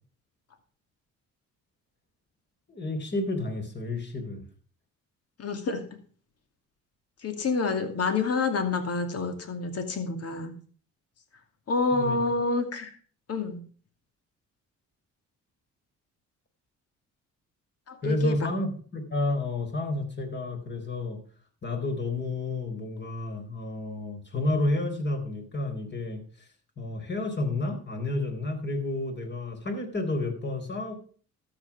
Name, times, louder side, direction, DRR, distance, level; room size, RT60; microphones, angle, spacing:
voice 1, 2.7-4.4 11.9-12.2 18.0-21.2 21.6-26.5 26.8-30.9, left 2 dB, 35° left, 5 dB, 4.1 m, -30 dB
voice 2, 5.4-5.8 7.2-10.5 11.7-12.9 13.3-13.6 17.9-18.5, left 3 dB, 55° left, 7 dB, 2.5 m, -28 dB
13.0 x 8.0 x 6.0 m, 0.42 s
cardioid pair, 90°, 30 cm